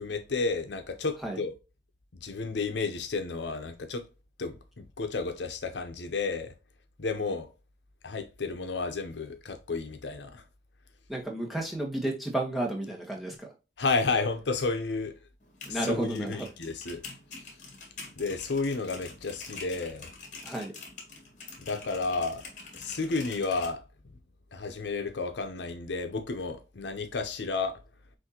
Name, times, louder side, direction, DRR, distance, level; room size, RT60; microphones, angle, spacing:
voice 1, 0.0-1.5 2.2-4.0 4.4-6.5 7.0-7.5 8.0-10.4 13.8-15.2 15.7-17.0 18.2-20.1 21.6-22.4 22.7-23.8 24.5-27.8, left 4 dB, 75° left, 0.7 m, -32 dB
voice 2, 11.1-13.5 15.6-16.5 20.4-20.8, right 1 dB, ahead, 1.2 m, -32 dB
sound 1, 15.4-23.7, left 4 dB, 45° left, 1.6 m, -46 dB
6.1 x 2.6 x 2.9 m
head